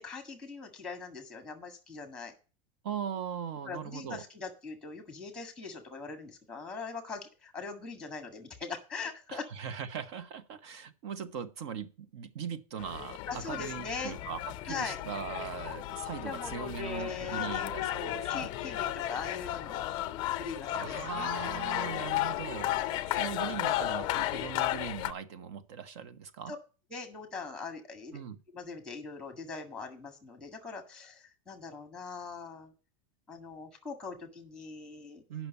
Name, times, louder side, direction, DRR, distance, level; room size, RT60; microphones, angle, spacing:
voice 1, 0.0-2.3 3.6-9.5 13.3-14.1 14.7-15.0 16.2-19.9 20.4-22.4 26.9-28.2 28.5-32.7 33.3-35.2, left 4 dB, 5° left, 1.7 m, -41 dB
voice 2, 2.8-4.2 9.3-18.5 20.7-26.5 28.1-28.4 35.3-35.5, right 7 dB, 55° right, 1.0 m, -40 dB
sound 1, 12.8-25.1, left 14 dB, 25° left, 0.5 m, -34 dB
8.4 x 6.0 x 8.0 m
supercardioid pair, 180°, 17 cm